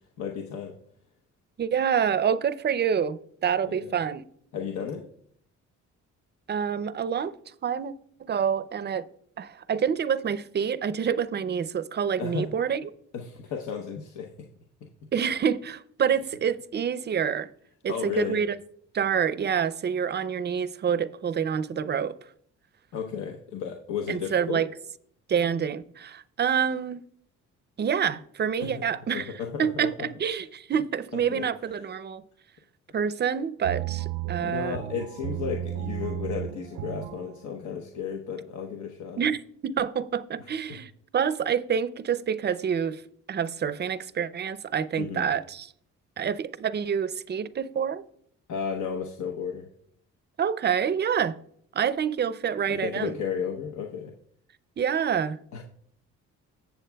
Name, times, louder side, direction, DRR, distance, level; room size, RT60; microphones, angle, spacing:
voice 1, 0.2-0.7 3.6-3.9 4.5-5.1 12.2-12.5 13.1-14.3 17.9-18.4 22.9-24.6 28.6-28.8 29.1-30.1 31.3-31.5 34.4-39.2 40.4-40.5 45.0-45.3 48.5-49.7 52.7-54.1 55.5-55.6, left 7 dB, 70° left, 0.9 m, -33 dB
voice 2, 1.6-4.2 6.5-7.3 7.6-7.9 8.2-9.1 9.4-12.9 15.1-17.5 17.8-18.6 18.9-22.1 24.1-24.7 25.3-27.0 27.8-29.3 29.6-32.2 32.9-34.8 39.2-43.0 43.3-45.7 46.2-48.0 50.4-51.4 51.7-53.1 54.8-55.4, right 7 dB, 35° right, 0.5 m, -27 dB
sound 1, 33.6-37.4, right 12 dB, 90° right, 0.5 m, -34 dB
16.0 x 7.1 x 2.3 m
cardioid pair, 90°, 30 cm